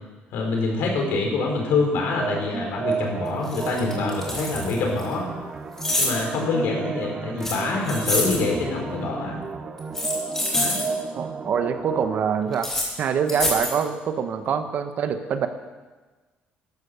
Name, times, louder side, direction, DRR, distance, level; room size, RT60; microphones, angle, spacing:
voice 1, 0.3-5.2 6.0-9.4 10.5-10.9, left 3 dB, 75° left, 1 dB, 4.3 m, -25 dB
sound 1, 2.2-12.2, right 5 dB, 25° right, 1.0 m, -33 dB
sound 2, 2.9-3.0 3.5-5.1 5.8-6.2 7.4-8.4 9.8-10.9 12.5-12.9 13.3-13.8, left 1 dB, 10° left, 2.8 m, -26 dB
voice 2, 11.2-12.7 13.0-15.5, right 7 dB, 50° right, 8 dB, 1.1 m, -25 dB
12.0 x 11.5 x 6.9 m, 1.3 s
cardioid pair, 155°, 4 cm